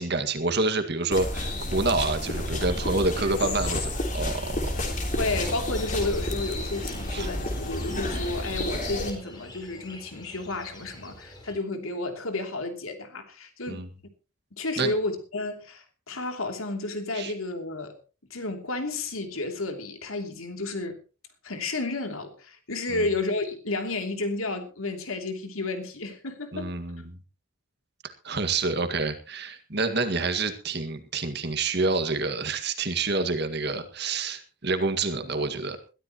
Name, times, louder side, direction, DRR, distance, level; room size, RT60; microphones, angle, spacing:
voice 1, 0.0-4.7 7.1-7.3 13.7-13.9 14.8-14.9 17.1-17.3 22.9-23.1 26.5-27.2 28.0-35.8, right 3 dB, 50° right, 1.9 m, -28 dB
sound 1, 1.1-9.1, left 1 dB, 35° left, 3.4 m, -30 dB
voice 2, 3.2-3.6 5.2-13.9 14.5-18.0 18.3-21.0 21.4-26.7, left 2 dB, 80° left, 2.9 m, -32 dB
sound 2, 5.6-11.6, left 2 dB, 20° left, 3.9 m, -47 dB
21.5 x 13.5 x 3.0 m
head